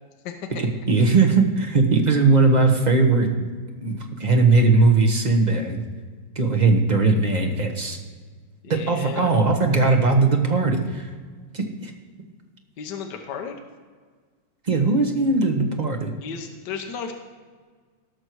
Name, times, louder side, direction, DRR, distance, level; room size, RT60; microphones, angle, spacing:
voice 1, 0.6-3.3 3.8-5.8 6.3-8.0 8.7-11.1 11.5-11.9 14.6-16.1, right 3 dB, 30° right, 2 dB, 0.8 m, -19 dB
voice 2, 8.6-9.3 12.8-13.6 16.2-17.1, left 7 dB, 60° left, 4 dB, 1.4 m, -34 dB
17.5 x 6.6 x 4.6 m, 1.5 s
omnidirectional pair, 2.3 m